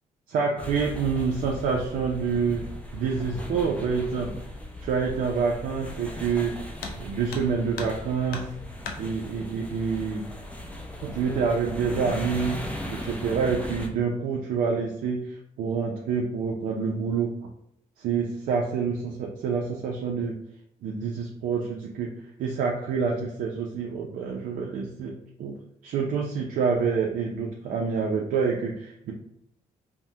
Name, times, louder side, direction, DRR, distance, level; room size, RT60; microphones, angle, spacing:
voice 1, 0.3-2.6 2.9-4.3 4.8-6.6 7.0-8.4 9.0-10.3 11.0-12.6 12.9-17.3 18.0-20.3 20.8-25.5 25.8-29.1, right 5 dB, 80° right, -1 dB, 0.4 m, -27 dB
sound 1, 0.6-13.9, equal, 10° left, 0.5 m, -38 dB
sound 2, 6.8-7.0 7.3-8.0 8.3-9.0 10.2-10.3 10.8-10.9 11.6-12.0 12.4-12.8, left 4 dB, 85° left, 0.5 m, -37 dB
3.4 x 2.0 x 2.7 m, 0.76 s
cardioid pair, 110°, 15 cm